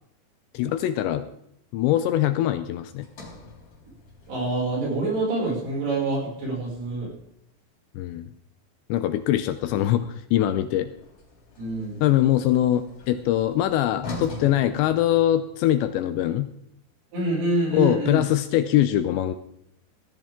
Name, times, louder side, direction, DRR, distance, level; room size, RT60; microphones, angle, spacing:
voice 1, 0.5-1.3 1.7-3.1 8.0-8.3 8.9-10.9 12.0-16.5 17.7-19.4, left 12 dB, 80° left, 10 dB, 2.7 m, -22 dB
Sliding door, 3.0-7.3 10.8-15.7, left 3 dB, 40° left, 5.0 m, -43 dB
voice 2, 4.3-7.1 11.6-12.0 17.1-18.2, right 2 dB, 60° right, -3 dB, 7.8 m, -26 dB
18.0 x 14.0 x 3.7 m, 0.72 s
omnidirectional pair, 5.5 m